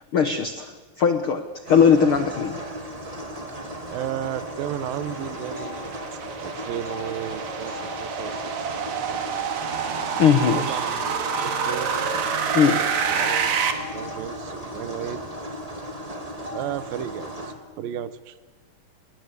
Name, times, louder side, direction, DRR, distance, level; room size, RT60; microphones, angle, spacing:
voice 1, 0.1-1.4 1.7-2.6 10.2-10.6 12.5-12.8, left 7 dB, 70° left, 9 dB, 1.2 m, -19 dB
sound 1, 1.7-17.5, equal, 10° right, 2.0 m, -36 dB
voice 2, 3.9-5.8 6.4-8.9 10.5-12.1 12.5-13.6 13.9-15.2 16.5-18.5, right 11 dB, 75° right, 14 dB, 2.8 m, -34 dB
sound 2, 4.1-13.7, right 7 dB, 55° right, 3.0 m, -28 dB
sound 3, 9.6-15.2, right 6 dB, 30° right, 2.2 m, -44 dB
28.0 x 22.0 x 8.3 m, 1.3 s
omnidirectional pair, 4.2 m